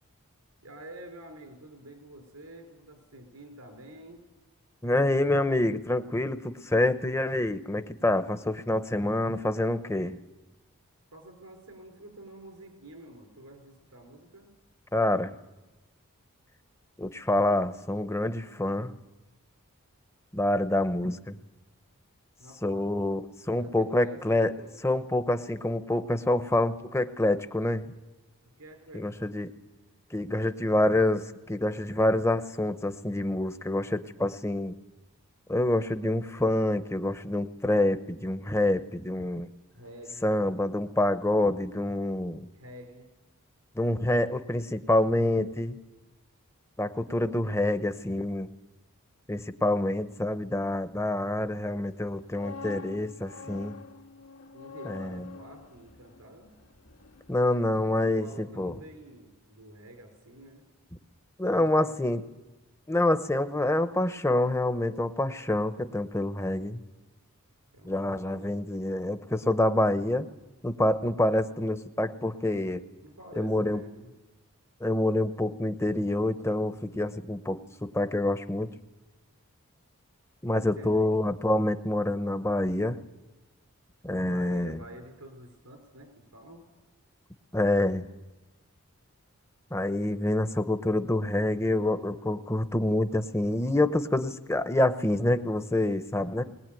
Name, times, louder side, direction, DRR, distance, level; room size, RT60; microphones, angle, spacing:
voice 1, 0.6-4.2 11.1-14.5 22.4-23.1 23.6-24.9 28.6-29.2 39.7-40.3 42.5-43.1 47.0-47.4 54.5-56.5 57.9-60.6 61.5-62.1 67.7-68.5 73.0-74.1 80.5-81.1 84.1-86.6 95.9-96.5, right 1 dB, 90° right, 4 dB, 5.0 m, -48 dB
voice 2, 4.8-10.2 14.9-15.3 17.0-19.0 20.3-21.4 22.6-24.5 24.8-27.8 28.9-29.5 30.1-34.7 35.5-39.5 40.2-42.5 43.8-45.8 46.8-48.5 49.3-53.7 54.9-55.2 57.3-58.7 61.4-62.2 62.9-66.8 67.8-70.3 70.6-72.8 73.4-73.8 74.8-78.7 80.4-83.0 84.0-84.8 87.5-88.1 89.7-96.4, left 1 dB, 10° left, 10 dB, 0.8 m, -27 dB
sound 1, 52.1-58.0 58.3-58.5, left 5 dB, 80° left, 2.1 m, -46 dB
20.5 x 20.0 x 9.1 m, 1.1 s
head